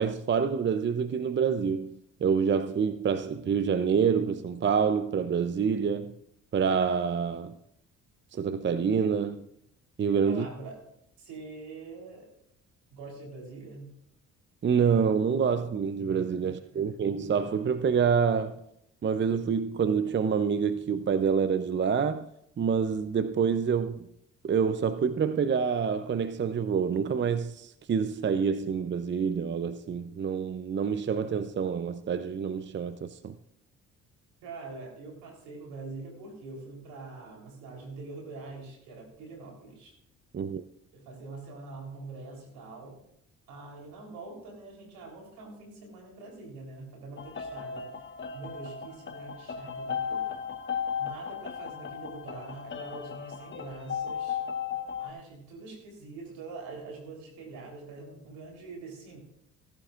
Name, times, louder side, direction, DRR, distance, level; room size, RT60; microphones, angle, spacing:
voice 1, 0.0-6.2 6.5-7.5 8.3-9.5 10.0-10.5 14.6-18.6 19.0-22.3 22.6-24.1 24.4-33.3 40.3-40.6, right 6 dB, 30° right, 0.6 m, -27 dB
voice 2, 10.3-10.8 11.2-12.3 12.9-13.9 16.4-17.0 34.4-39.9 40.9-43.0 43.5-47.9 48.3-50.5 51.0-54.4 55.0-59.2, right 3 dB, 80° right, 3.8 m, -44 dB
sound 1, 47.2-55.1, left 7 dB, 30° left, 1.2 m, -36 dB
17.0 x 11.5 x 2.5 m
supercardioid pair, 60°, 36 cm